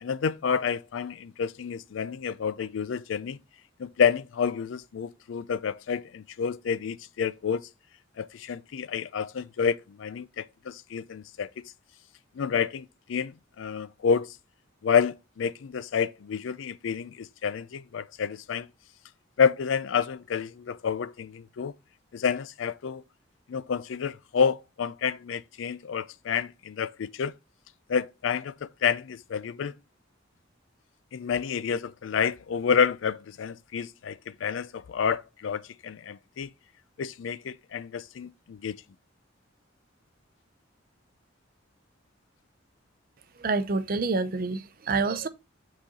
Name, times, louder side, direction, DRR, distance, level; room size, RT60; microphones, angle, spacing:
voice 1, 0.0-3.4 3.8-7.7 8.2-11.7 12.4-14.4 14.8-18.7 19.4-21.7 22.1-23.0 23.5-27.3 27.9-29.7 31.1-36.5 37.0-38.8, left 6 dB, 75° left, 0.4 m, -29 dB
voice 2, 43.4-45.3, right 3 dB, 45° right, 0.6 m, -27 dB
6.2 x 4.1 x 4.0 m
head